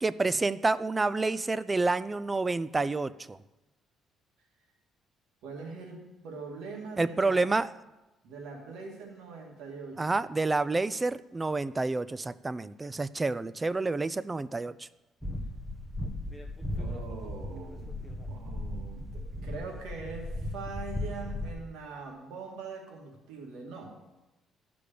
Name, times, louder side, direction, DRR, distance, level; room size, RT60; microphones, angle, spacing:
voice 1, 0.0-3.4 7.0-7.7 10.0-14.9, right 3 dB, 15° right, 16 dB, 0.3 m, -29 dB
voice 2, 5.4-7.4 8.2-10.1 16.8-23.9, right 4 dB, 85° right, 0 dB, 2.0 m, -42 dB
sound 1, 15.2-21.5, left 1 dB, ahead, 1.0 m, -37 dB
11.5 x 5.1 x 6.8 m, 1.0 s
cardioid pair, 135°, 0 cm